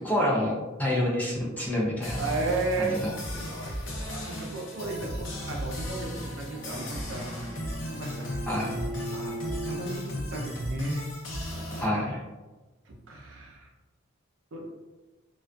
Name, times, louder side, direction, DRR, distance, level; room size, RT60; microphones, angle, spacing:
voice 1, 0.0-2.2 2.8-3.1 8.5-8.7 11.8-12.2, left 1 dB, 10° left, -4 dB, 0.4 m, -27 dB
sound 1, 2.0-11.9, equal, 70° left, 0.6 m, -36 dB
voice 2, 2.2-3.0 3.4-7.5 7.9-8.4 9.1-9.3 9.6-11.0 11.5-12.1 12.9-13.7 14.5-14.7, right 3 dB, 65° right, -1 dB, 0.5 m, -34 dB
Bowed string instrument, 6.4-10.5, right 1 dB, 35° right, 1.0 m, -39 dB
2.5 x 2.3 x 2.2 m, 1.2 s
head